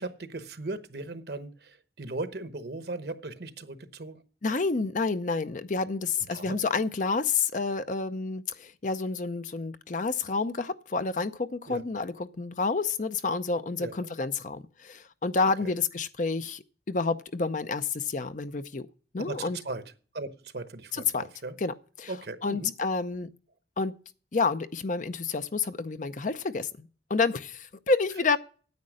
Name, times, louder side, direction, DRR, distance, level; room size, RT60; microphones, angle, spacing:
voice 1, 0.0-4.2 6.3-6.6 11.7-11.8 13.7-13.9 15.6-15.7 19.2-19.8 20.1-21.5 22.1-22.7, right 2 dB, 65° right, 1.0 m, -38 dB
voice 2, 4.4-18.9 19.1-19.6 20.9-21.3 21.6-22.1 22.4-23.3 23.8-23.9 24.3-28.4, left 4 dB, 45° left, 0.6 m, -29 dB
9.6 x 8.7 x 6.4 m
head